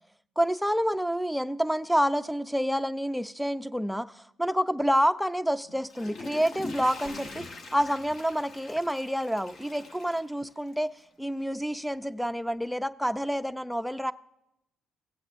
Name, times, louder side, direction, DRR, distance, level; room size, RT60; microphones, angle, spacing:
voice 1, 0.4-14.1, equal, ahead, 0.5 m, -28 dB
Water / Toilet flush, 5.7-11.0 11.4-11.5, left 3 dB, 50° left, 1.1 m, -43 dB
sound 1, 7.0-7.6, left 2 dB, 75° left, 3.5 m, -47 dB
18.0 x 8.0 x 2.5 m
cardioid pair, 95°, 0 cm